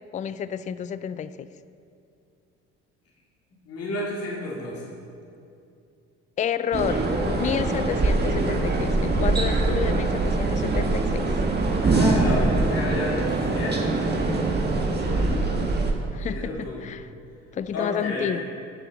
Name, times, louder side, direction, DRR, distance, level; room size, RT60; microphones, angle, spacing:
voice 1, 0.1-1.5 6.4-11.3 15.1-15.8 16.1-17.1 17.5-18.4, left 8 dB, 25° left, 14 dB, 0.4 m, -30 dB
voice 2, 3.7-4.9 7.6-7.8 11.8-14.1 14.9-15.5 16.3-16.8 17.7-18.4, left 1 dB, 50° left, -5 dB, 2.6 m, -31 dB
sound 1, 6.7-15.9, right 3 dB, 30° right, 1.5 m, -23 dB
15.0 x 7.1 x 4.1 m, 2.5 s
supercardioid pair, 70°, 31 cm